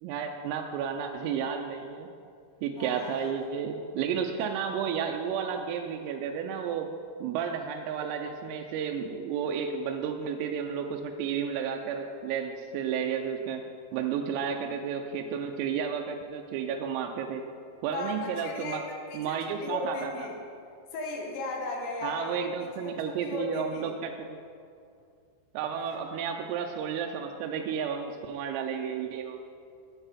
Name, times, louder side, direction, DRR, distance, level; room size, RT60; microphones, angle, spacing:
voice 1, 0.0-2.1 2.6-6.9 7.2-13.7 13.9-17.5 17.8-18.8 19.1-20.3 22.0-24.4 25.5-29.4, right 7 dB, 85° right, 3 dB, 3.3 m, -32 dB
voice 2, 2.8-3.4 17.9-18.8 19.1-20.3 20.9-23.9 25.9-26.0, left 3 dB, 70° left, 0 dB, 3.1 m, -36 dB
13.5 x 9.8 x 4.2 m, 2.4 s
omnidirectional pair, 5.9 m